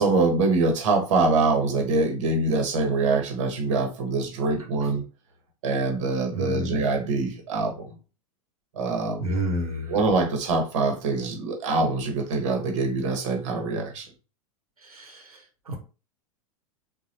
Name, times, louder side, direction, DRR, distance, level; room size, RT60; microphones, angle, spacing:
voice 1, 0.0-5.0 5.6-7.9 8.7-9.3 9.9-14.1, right 3 dB, 60° right, 4 dB, 1.0 m, -24 dB
voice 2, 6.3-6.8 9.2-9.9 14.8-15.8, equal, 80° right, 1 dB, 0.9 m, -30 dB
3.9 x 2.3 x 2.8 m, 0.33 s
figure-of-eight pair, 90°, 18 cm